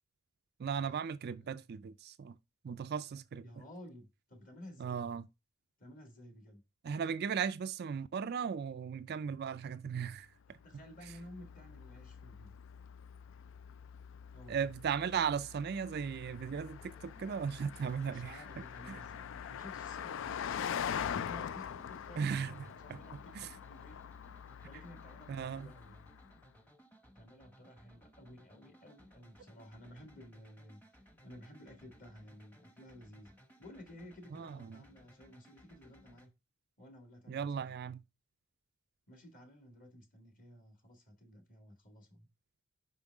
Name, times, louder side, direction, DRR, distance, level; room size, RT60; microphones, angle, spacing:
voice 1, 0.6-2.3 2.6-3.4 4.8-5.2 6.8-10.3 14.5-18.3 18.9-19.0 22.2-22.5 22.9-23.0 23.4-23.5 25.3-25.7 34.3-34.6 37.3-38.0, right 7 dB, 50° right, 0.3 m, -36 dB
voice 2, 1.2-1.7 3.4-5.2 5.8-6.6 10.5-12.5 14.3-14.7 18.0-24.0 24.7-26.1 27.0-30.8 31.2-33.3 33.6-36.3 36.8-37.7 39.1-42.3, equal, 40° left, 2.0 m, -54 dB
Car passing by, 10.6-26.3, left 8 dB, 60° left, 0.3 m, -44 dB
sound 1, 16.4-36.3, equal, 10° left, 1.0 m, -62 dB
5.5 x 5.3 x 3.4 m
head